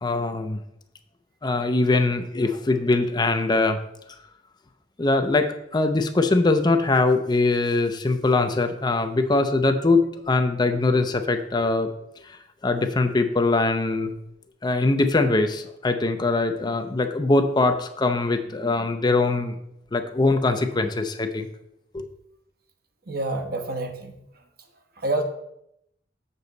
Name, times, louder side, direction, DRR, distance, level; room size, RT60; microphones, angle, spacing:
voice 1, 0.0-0.6 1.4-3.8 5.0-11.9 12.6-14.2 14.6-19.5 19.9-21.5 21.9-22.1, left 3 dB, 25° left, 8 dB, 0.5 m, -22 dB
voice 2, 23.1-24.1 25.0-25.2, right 2 dB, 60° right, 5 dB, 1.1 m, -27 dB
7.1 x 6.9 x 4.0 m, 0.79 s
head